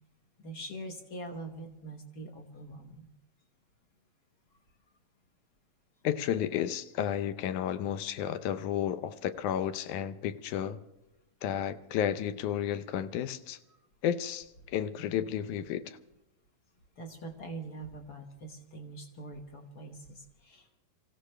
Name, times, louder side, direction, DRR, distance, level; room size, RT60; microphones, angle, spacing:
voice 1, 0.4-3.1 17.0-20.8, right 2 dB, 55° left, 4 dB, 1.1 m, -43 dB
voice 2, 6.0-10.8 11.4-13.6 14.0-16.0, left 10 dB, 85° left, 11 dB, 2.1 m, -32 dB
26.0 x 15.5 x 3.3 m, 0.96 s
omnidirectional pair, 3.5 m